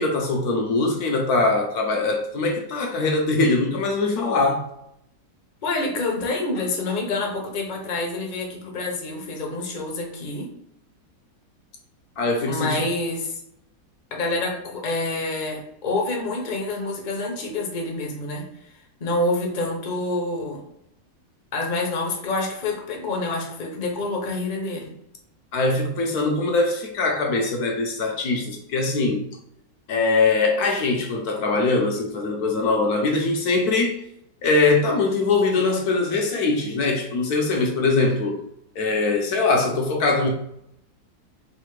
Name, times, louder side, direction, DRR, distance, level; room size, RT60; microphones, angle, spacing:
voice 1, 0.0-4.6 12.2-12.8 25.5-29.2 29.9-34.0 34.4-38.4 38.7-40.3, left 3 dB, 70° left, 1.2 m, -22 dB
voice 2, 5.6-10.5 12.5-13.3 14.1-18.4 19.0-20.6 21.5-24.9, left 2 dB, 35° left, 0.8 m, -27 dB
3.5 x 2.7 x 4.6 m
omnidirectional pair, 1.8 m